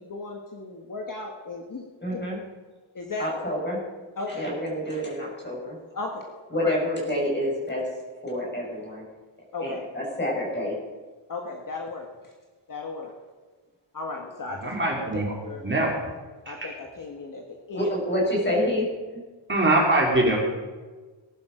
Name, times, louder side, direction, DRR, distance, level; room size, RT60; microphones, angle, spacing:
voice 1, 0.0-1.8 2.1-2.2 2.9-3.3 4.2-4.4 5.9-6.2 6.5-6.7 9.5-9.8 11.3-12.1 12.7-13.1 13.9-14.7 15.1-15.6 16.5-17.9, left 3 dB, 45° left, 1 dB, 1.6 m, -35 dB
voice 2, 2.0-2.4 3.2-3.8 4.3-5.8 6.5-7.9 8.2-9.0 9.6-10.8 17.7-19.2, left 1 dB, 20° left, -3 dB, 5.6 m, -28 dB
voice 3, 14.6-15.3 15.6-15.9 16.5-16.7 19.5-20.4, right 1 dB, 25° right, -1 dB, 2.8 m, -22 dB
19.0 x 11.5 x 5.1 m, 1.3 s
wide cardioid pair, 165°, 47 cm